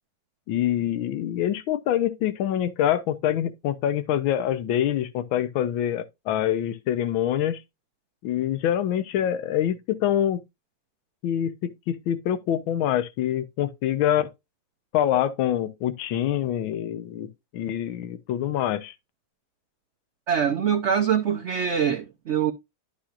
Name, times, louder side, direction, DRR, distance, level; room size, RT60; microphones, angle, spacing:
voice 1, 0.5-7.6 8.2-10.4 11.2-14.3 14.9-18.9, left 11 dB, 80° left, 1.6 m, -25 dB
voice 2, 20.3-22.5, right 8 dB, 70° right, 0.6 m, -24 dB
11.5 x 6.0 x 2.4 m
omnidirectional pair, 2.2 m